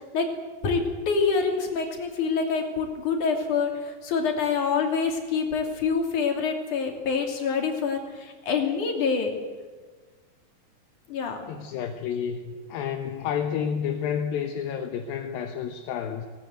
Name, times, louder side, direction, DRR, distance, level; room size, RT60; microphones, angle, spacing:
voice 1, 0.6-9.3 11.1-11.4, left 5 dB, 55° left, 2 dB, 4.4 m, -26 dB
voice 2, 11.5-16.3, left 8 dB, 75° left, 5 dB, 2.9 m, -30 dB
19.5 x 19.5 x 9.3 m, 1.4 s
omnidirectional pair, 4.2 m